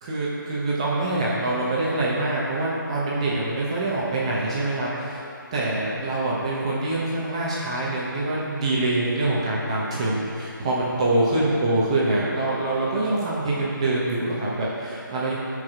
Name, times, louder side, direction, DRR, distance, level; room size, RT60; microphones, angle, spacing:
voice 1, 0.0-5.2 5.5-15.3, right 2 dB, 15° right, -7 dB, 0.9 m, -25 dB
13.0 x 4.9 x 4.9 m, 2.8 s
hypercardioid pair, 175°, 11 cm